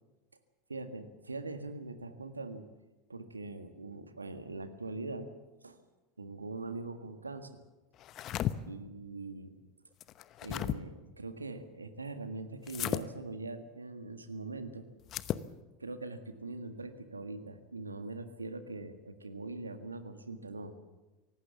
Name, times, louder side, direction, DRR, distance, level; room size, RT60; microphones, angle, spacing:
voice 1, 0.7-2.7 3.1-5.3 5.6-5.8 6.2-7.6 8.7-9.5 10.4-14.9 15.8-20.7, right 3 dB, 85° right, 9 dB, 1.7 m, -42 dB
sound 1, 8.0-8.5 10.0-10.8 12.7-13.0 15.0-15.5, left 12 dB, 40° left, 0.9 m, -34 dB
24.0 x 18.0 x 7.2 m, 1.1 s
figure-of-eight pair, 80°, 0 cm